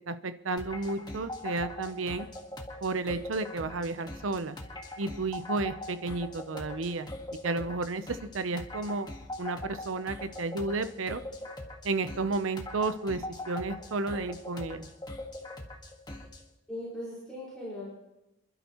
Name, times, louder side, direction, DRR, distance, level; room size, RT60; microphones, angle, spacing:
voice 1, 0.1-2.3 2.8-4.6 5.0-7.1 7.4-8.0 8.3-9.1 9.4-11.2 11.8-13.2 13.5-14.9, right 3 dB, 85° right, 11 dB, 0.7 m, -32 dB
sound 1, 0.6-16.5, left 1 dB, 20° left, 1.6 m, -42 dB
voice 2, 16.7-17.9, left 1 dB, 5° left, -9 dB, 5.2 m, -39 dB
28.0 x 12.0 x 3.1 m, 0.92 s
head